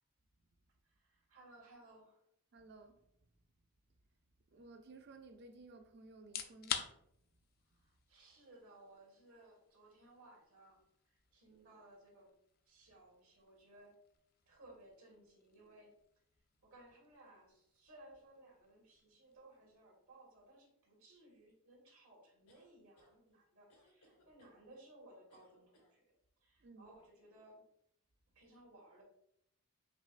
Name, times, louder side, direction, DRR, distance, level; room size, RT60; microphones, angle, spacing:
voice 1, 0.8-2.2 7.7-12.3 12.6-13.9 14.4-15.9 16.6-26.1 26.4-27.6 28.3-29.0, right 1 dB, 80° right, 1.5 m, -61 dB
voice 2, 2.5-3.0 4.5-7.0 26.6-26.9, right 3 dB, 50° right, 0.4 m, -56 dB
sound 1, 6.2-21.0, left 8 dB, 45° left, 0.3 m, -51 dB
sound 2, 22.5-23.1 23.7-24.6 25.3-25.9, left 1 dB, 85° left, 1.0 m, -69 dB
5.3 x 2.9 x 2.4 m
head